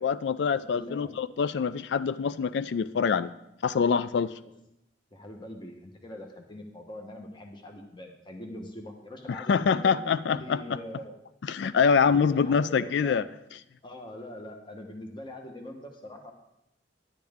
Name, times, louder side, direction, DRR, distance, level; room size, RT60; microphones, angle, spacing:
voice 1, 0.0-3.3 3.6-4.3 9.3-10.8 11.5-13.2, left 6 dB, 65° left, 15 dB, 0.4 m, -25 dB
voice 2, 0.7-1.1 5.1-11.2 11.9-13.2 13.8-16.3, left 1 dB, 25° left, 3 dB, 1.0 m, -43 dB
10.5 x 10.5 x 3.5 m, 0.84 s
head